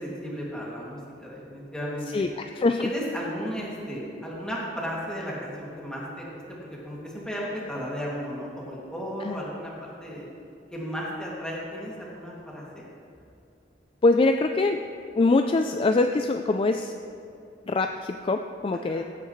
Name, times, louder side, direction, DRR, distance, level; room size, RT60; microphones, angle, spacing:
voice 1, 0.0-2.2 2.8-10.3 10.7-12.8 18.8-19.0, equal, 5° left, -5 dB, 2.3 m, -34 dB
voice 2, 2.6-2.9 9.2-9.4 14.0-14.8 15.2-16.9 17.7-19.0, left 3 dB, 30° left, 5 dB, 0.3 m, -23 dB
15.5 x 9.4 x 3.1 m, 2.7 s
head